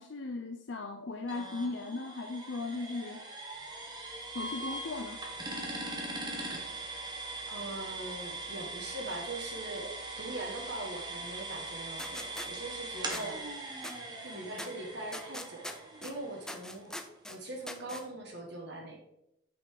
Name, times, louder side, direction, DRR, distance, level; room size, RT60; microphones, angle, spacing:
voice 1, 0.0-3.3 4.3-5.2, left 3 dB, 60° left, 5 dB, 0.6 m, -37 dB
sound 1, 1.3-17.0, right 2 dB, 20° right, 1.3 m, -41 dB
voice 2, 7.5-13.7 14.2-17.0 17.3-19.0, right 2 dB, 50° right, -1 dB, 1.5 m, -41 dB
sound 2, 12.0-12.5 13.1-13.2 13.8-13.9 14.6-14.7 15.1-16.1 16.5-17.4 17.7-18.0, left 1 dB, 5° left, 0.5 m, -41 dB
6.3 x 5.5 x 6.4 m, 0.82 s
head